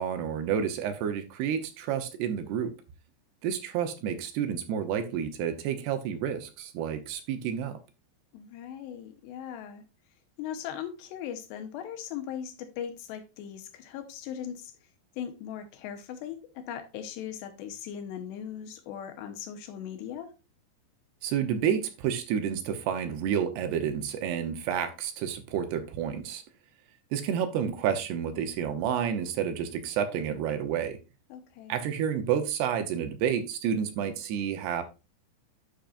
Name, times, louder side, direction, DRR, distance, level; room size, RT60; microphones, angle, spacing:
voice 1, 0.0-2.7 3.4-7.8 21.2-26.4 27.1-31.0 31.7-34.8, right 8 dB, 75° right, 2.8 m, -30 dB
voice 2, 8.3-9.8 10.4-14.7 15.2-20.3 31.3-31.9, left 9 dB, 80° left, 3.1 m, -39 dB
11.5 x 5.9 x 2.5 m
omnidirectional pair, 5.1 m